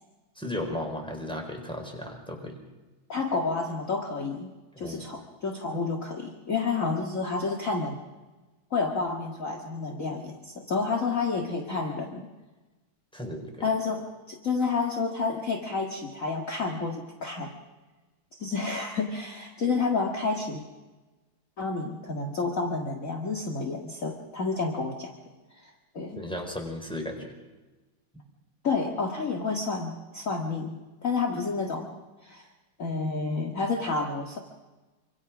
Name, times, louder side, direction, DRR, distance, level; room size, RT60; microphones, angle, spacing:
voice 1, 0.4-2.6 4.8-5.1 13.1-13.7 26.1-27.3, left 1 dB, ahead, 2 dB, 4.5 m, -35 dB
voice 2, 3.1-4.5 4.8-8.0 8.7-12.3 13.6-17.5 18.4-20.6 21.6-25.1 25.6-26.2 28.6-31.9 32.2-32.5 32.8-34.4, left 4 dB, 40° left, 1 dB, 2.2 m, -30 dB
26.5 x 26.0 x 6.2 m, 1.2 s
omnidirectional pair, 2.4 m